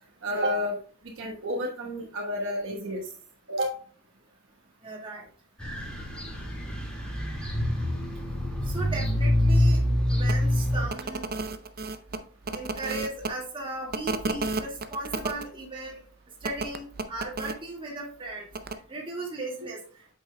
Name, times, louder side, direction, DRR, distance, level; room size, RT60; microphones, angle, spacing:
voice 1, 0.2-0.8 1.2-3.0 3.5-3.7, equal, 60° right, 0 dB, 1.2 m, -30 dB
voice 2, 4.8-5.3 8.7-9.8 10.2-11.3 12.5-16.0 16.4-18.4 18.9-19.8, right 2 dB, 25° right, -2 dB, 1.9 m, -36 dB
sound 1, 5.6-10.9, left 1 dB, 5° left, 1.9 m, -25 dB
sound 2, 10.2-10.4 10.9-13.3 13.9-15.4 16.4-17.5 18.5-18.7, right 3 dB, 40° right, 0.5 m, -32 dB
8.2 x 6.0 x 2.2 m, 0.43 s
head